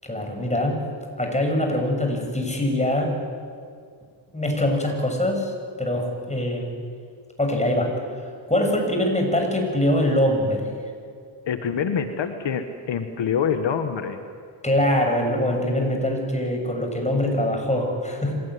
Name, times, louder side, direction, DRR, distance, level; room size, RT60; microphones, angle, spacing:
voice 1, 0.0-0.8 1.2-3.2 4.3-5.5 5.8-6.7 7.4-7.9 8.5-10.8 14.6-18.4, left 1 dB, 15° left, 3 dB, 7.4 m, -23 dB
voice 2, 11.5-14.2, left 7 dB, 75° left, 7 dB, 1.6 m, -25 dB
25.5 x 18.5 x 9.9 m, 2.2 s
cardioid pair, 65°, 44 cm